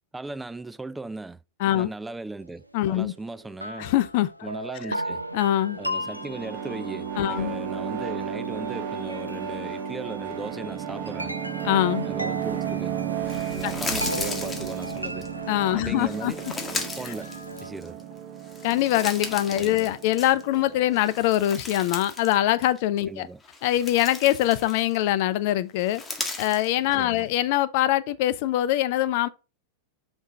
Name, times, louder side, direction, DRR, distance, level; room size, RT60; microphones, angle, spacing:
voice 1, 0.1-1.4 1.7-3.9 4.4-5.2 5.8-11.3 12.0-13.0 13.5-15.3 15.7-16.4 17.0-17.3 17.6-18.0 19.6-19.9 23.1-23.4 27.0-27.3, right 2 dB, 10° right, 0.3 m, -37 dB
voice 2, 2.7-3.1 3.8-4.3 4.8-4.9 5.3-5.8 7.2-7.6 11.6-12.1 13.6-13.7 15.5-16.3 17.0-17.1 18.6-23.3 23.6-26.0 26.4-29.3, left 14 dB, 50° left, 0.5 m, -23 dB
sound 1, 2.9-3.0 3.6-17.7, right 1 dB, 90° right, 0.5 m, -37 dB
sound 2, 5.7-21.2, right 8 dB, 40° right, 0.9 m, -34 dB
sound 3, 13.3-15.3 16.0-18.0 18.4-20.6 20.9-22.4 22.6-22.8 23.4-25.1 25.8-26.7, left 3 dB, 10° left, 1.4 m, -36 dB
5.5 x 3.5 x 5.4 m
figure-of-eight pair, 90°, 0 cm